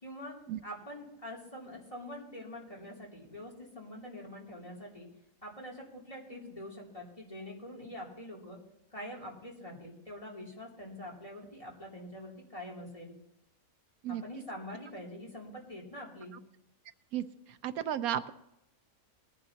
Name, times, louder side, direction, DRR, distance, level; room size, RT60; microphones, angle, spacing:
voice 1, 0.0-0.4 0.6-5.1 5.4-8.6 8.9-13.1 14.1-16.3, left 1 dB, 25° left, -2 dB, 3.0 m, -45 dB
voice 2, 17.1-18.3, right 10 dB, 90° right, 12 dB, 1.2 m, -34 dB
20.0 x 10.5 x 2.9 m, 0.84 s
omnidirectional pair, 1.5 m